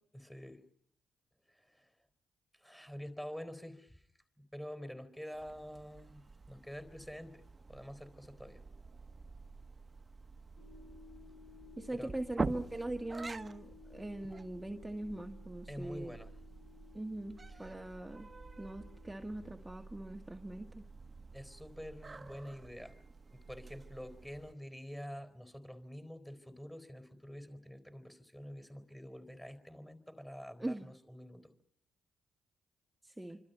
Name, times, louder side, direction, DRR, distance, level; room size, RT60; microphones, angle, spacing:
voice 1, 0.1-0.6 1.5-1.9 2.5-4.0 4.4-7.4 7.7-8.6 11.9-12.1 15.7-16.3 17.5-17.8 21.3-23.0 23.2-31.5, equal, 5° left, 10 dB, 4.2 m, -47 dB
sound 1, 5.3-24.5, right 3 dB, 30° right, 1.3 m, -47 dB
sound 2, 10.6-19.7, left 8 dB, 35° left, 6.4 m, -59 dB
voice 2, 11.8-16.1 16.9-18.3 18.6-20.9 30.6-30.9 33.0-33.4, right 1 dB, 10° right, 5 dB, 1.7 m, -41 dB
28.5 x 25.5 x 5.6 m, 0.63 s
hypercardioid pair, 40°, 0 cm